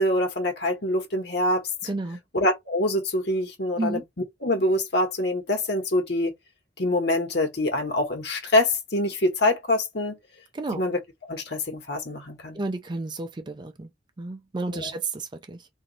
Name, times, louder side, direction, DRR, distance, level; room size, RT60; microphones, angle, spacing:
voice 1, 0.0-1.6 2.3-4.0 4.4-6.3 6.8-10.2 10.7-11.0 11.3-12.6 14.8-14.9, left 1 dB, 65° left, 1.3 m, -25 dB
voice 2, 1.8-2.2 3.8-4.0 10.5-10.8 12.5-13.9 14.2-15.7, right 2 dB, 25° right, 0.4 m, -31 dB
2.9 x 2.6 x 4.0 m
head